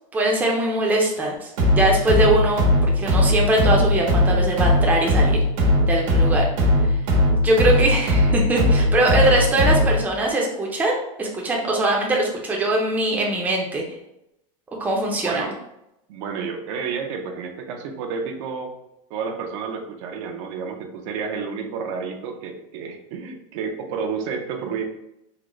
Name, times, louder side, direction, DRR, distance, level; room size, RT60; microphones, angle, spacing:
voice 1, 0.1-2.6 2.9-5.4 5.9-6.5 6.8-6.9 7.4-13.8 14.8-15.5, right 1 dB, 10° right, -1 dB, 0.5 m, -22 dB
sound 1, 1.6-10.1, left 1 dB, 75° right, 1.2 m, -19 dB
voice 2, 15.1-15.6 16.1-18.7 19.1-24.8, right 5 dB, 60° right, 4 dB, 0.5 m, -30 dB
3.7 x 2.0 x 3.0 m, 0.85 s
supercardioid pair, 145°, 18 cm